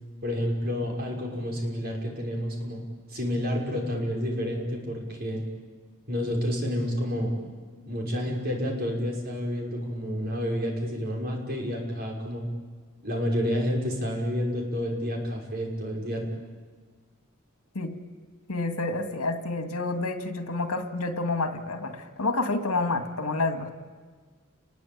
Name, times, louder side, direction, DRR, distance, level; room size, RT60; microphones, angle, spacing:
voice 1, 0.2-2.8 3.1-5.4 6.1-7.3 7.8-12.4 13.0-16.2, equal, 45° right, 0 dB, 5.9 m, -29 dB
voice 2, 18.5-23.7, left 3 dB, 80° left, 7 dB, 2.4 m, -29 dB
30.0 x 21.5 x 8.9 m, 1.5 s
head